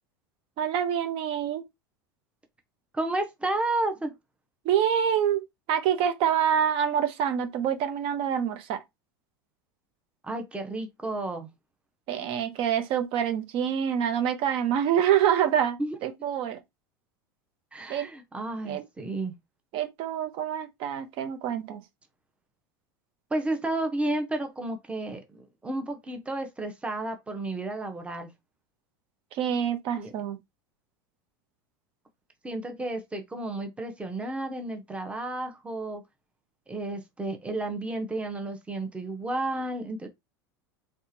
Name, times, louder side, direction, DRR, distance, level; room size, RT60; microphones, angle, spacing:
voice 1, 0.6-1.6 4.6-8.8 12.1-16.6 17.9-18.1 18.6-18.8 19.7-21.8 29.3-30.4, right 9 dB, 55° right, 0.9 m, -26 dB
voice 2, 2.9-4.1 10.2-11.5 15.8-15.9 17.7-19.3 23.3-28.3 30.0-30.1 32.4-36.0 36.7-40.1, right 2 dB, 10° right, 1.0 m, -32 dB
3.5 x 3.2 x 2.9 m
hypercardioid pair, 85°, 11 cm